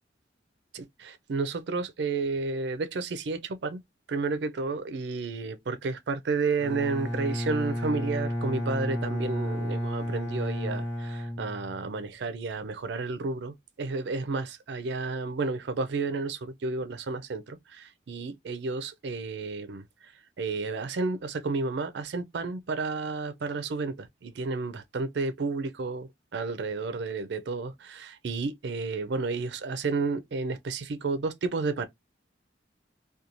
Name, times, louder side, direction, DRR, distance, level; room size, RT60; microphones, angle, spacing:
voice 1, 0.7-3.8 4.1-20.1 20.4-31.9, right 3 dB, 70° right, 0.4 m, -31 dB
Bowed string instrument, 6.6-12.1, left 1 dB, 60° left, 1.4 m, -32 dB
2.5 x 2.3 x 2.9 m
head